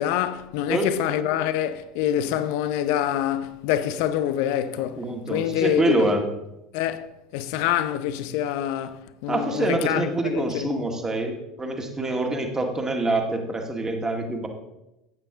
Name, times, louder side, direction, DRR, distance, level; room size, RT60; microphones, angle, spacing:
voice 1, 0.0-6.1 6.7-10.8, left 11 dB, 55° left, 0.7 m, -26 dB
voice 2, 5.0-6.2 9.3-14.5, right 2 dB, 15° right, 1.9 m, -26 dB
13.0 x 8.8 x 3.8 m
figure-of-eight pair, 75°, 3 cm